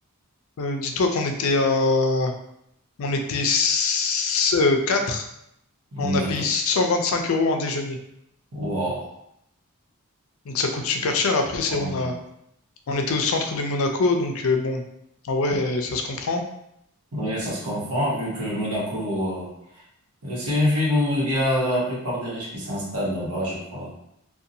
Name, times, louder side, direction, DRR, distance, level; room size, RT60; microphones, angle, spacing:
voice 1, 0.6-2.3 3.0-5.3 6.0-8.0 10.5-12.1 12.9-14.8 15.2-16.4, left 3 dB, 65° left, 4 dB, 0.4 m, -23 dB
voice 2, 5.9-6.3 8.5-9.0 11.7-12.0 15.5-15.6 17.1-19.8 20.2-23.9, left 1 dB, 80° right, -5 dB, 1.1 m, -26 dB
2.6 x 2.2 x 2.6 m, 0.77 s
head